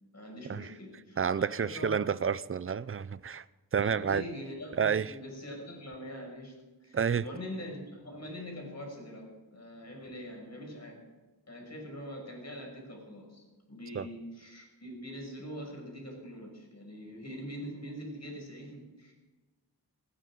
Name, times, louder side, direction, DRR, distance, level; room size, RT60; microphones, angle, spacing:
voice 1, 0.1-2.0 3.8-6.5 6.8-11.0 11.5-19.1, equal, 40° left, 0 dB, 6.2 m, -43 dB
voice 2, 1.2-3.4 3.7-4.2 4.8-5.1 6.9-7.2 13.9-14.1, right 7 dB, 35° right, 18 dB, 0.5 m, -29 dB
19.5 x 16.5 x 3.8 m, 1.2 s
wide cardioid pair, 85°, 39 cm